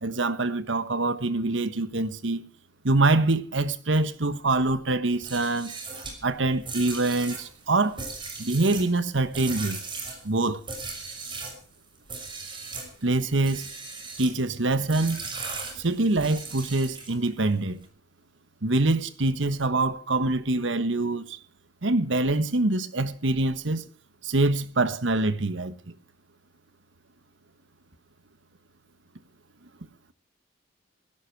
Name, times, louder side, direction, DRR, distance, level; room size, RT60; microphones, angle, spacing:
voice 1, 0.0-2.4 2.8-5.7 6.2-8.0 8.4-9.8 10.2-10.6 13.0-13.7 14.2-15.2 15.7-17.8 18.6-21.4 21.8-23.9 24.2-25.9, right 2 dB, 75° right, 1.3 m, -25 dB
sound 1, 5.1-11.6 12.1-12.9 13.4-14.4 14.9-17.3, right 4 dB, 25° right, 5.9 m, -38 dB
17.0 x 16.5 x 4.7 m
head